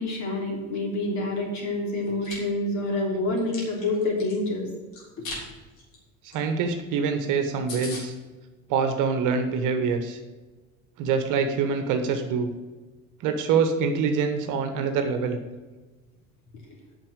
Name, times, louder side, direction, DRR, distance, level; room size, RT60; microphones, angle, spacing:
voice 1, 0.0-4.7, left 2 dB, 40° left, -1 dB, 3.4 m, -27 dB
Chewing mastication, 2.0-2.3 2.9-4.3 4.9-5.4 5.8-5.9 6.3-6.4 6.7-6.8 7.1-7.2 7.4-7.5 7.7-8.0, left 3 dB, 70° left, 3.5 m, -38 dB
voice 2, 6.3-8.1 8.7-10.2 11.0-12.5 13.2-15.4, right 5 dB, 45° right, 7 dB, 1.3 m, -25 dB
9.0 x 5.9 x 8.0 m, 1.2 s
figure-of-eight pair, 65°, 41 cm